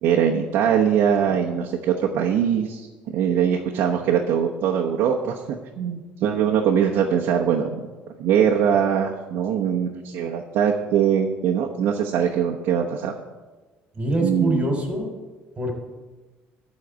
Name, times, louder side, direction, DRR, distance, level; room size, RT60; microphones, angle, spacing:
voice 1, 0.0-2.9 3.1-7.7 8.2-13.1 14.2-14.6, right 8 dB, 70° right, -1 dB, 1.0 m, -22 dB
voice 2, 13.9-15.1 15.6-15.7, right 1 dB, 25° right, 2 dB, 3.2 m, -24 dB
12.5 x 4.2 x 8.0 m, 1.2 s
cardioid pair, 100°, 4 cm